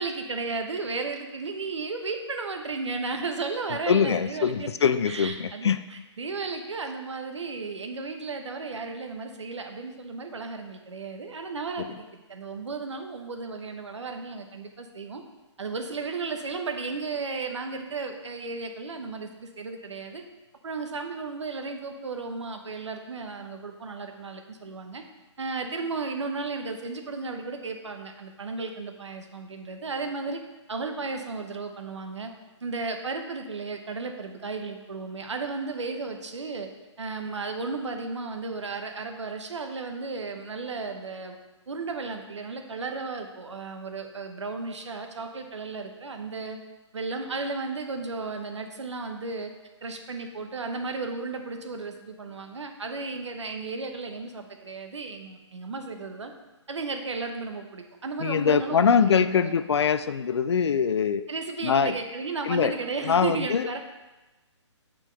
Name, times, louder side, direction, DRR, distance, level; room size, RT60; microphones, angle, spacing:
voice 1, 0.0-15.2 15.6-20.2 20.6-25.0 25.4-30.4 30.7-32.3 32.6-36.7 37.0-41.4 41.7-46.6 46.9-49.5 49.8-56.3 56.7-59.5 61.3-63.8, right 4 dB, 70° right, 4 dB, 1.0 m, -34 dB
voice 2, 3.9-5.8 58.2-61.2 61.6-61.9 62.4-62.7 63.0-63.6, left 7 dB, 60° left, 12 dB, 0.4 m, -23 dB
7.2 x 4.5 x 3.9 m, 1.1 s
figure-of-eight pair, 140°, 16 cm